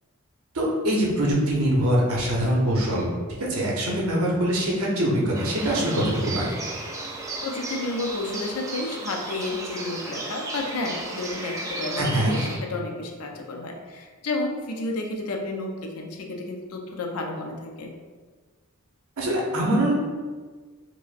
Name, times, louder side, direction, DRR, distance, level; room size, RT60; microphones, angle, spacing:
voice 1, 0.5-6.6 12.0-12.4 19.2-19.9, right 1 dB, 75° right, -3 dB, 0.8 m, -23 dB
sound 1, 5.3-12.6, right 2 dB, 15° right, 0.3 m, -34 dB
voice 2, 7.4-17.9, left 2 dB, 80° left, 2 dB, 0.5 m, -31 dB
4.9 x 2.1 x 2.5 m, 1.4 s
head